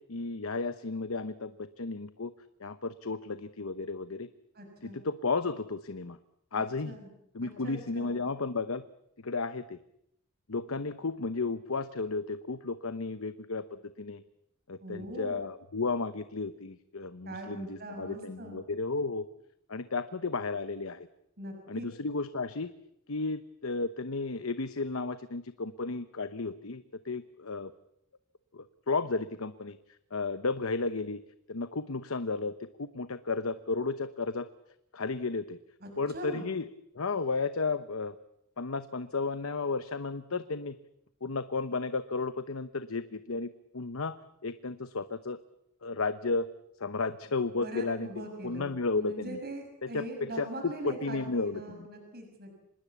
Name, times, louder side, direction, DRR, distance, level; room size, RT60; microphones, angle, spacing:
voice 1, 0.0-2.3 2.6-4.3 4.8-6.2 6.5-7.0 7.3-8.8 9.2-9.8 10.5-13.6 14.0-14.2 14.7-19.2 19.7-21.1 21.7-22.7 23.1-27.7 28.5-29.8 30.1-31.2 31.5-32.5 32.8-34.5 34.9-35.6 36.0-36.7 36.9-38.1 38.6-40.8 41.2-43.5 43.7-44.2 44.4-45.4 45.8-46.5 46.8-49.4 49.8-50.5 50.8-51.9, left 3 dB, 70° left, 12 dB, 0.9 m, -33 dB
voice 2, 4.5-5.0 6.5-7.1 7.4-8.2 14.8-15.4 17.3-18.6 21.4-21.8 35.8-36.5 47.6-52.5, right 1 dB, 50° right, 3 dB, 6.4 m, -42 dB
25.5 x 20.5 x 8.4 m, 0.75 s
head